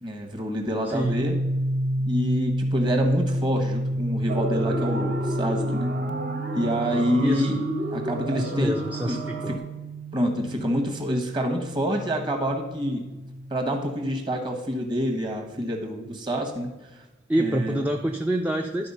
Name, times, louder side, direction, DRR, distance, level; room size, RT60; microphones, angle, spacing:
voice 1, 0.0-1.4 2.0-5.9 6.5-7.6 7.9-9.2 9.5-9.6 10.1-13.0 13.5-16.7 17.4-17.8, equal, 25° right, 3 dB, 1.2 m, -27 dB
voice 2, 0.9-1.2 7.2-7.5 8.3-9.6 17.3-18.9, right 1 dB, 10° right, 2 dB, 0.4 m, -27 dB
sound 1, 1.0-14.7, right 1 dB, 90° right, 0.5 m, -30 dB
sound 2, 4.3-9.6, right 1 dB, 55° right, 1.1 m, -32 dB
11.0 x 4.3 x 5.5 m, 1.1 s
head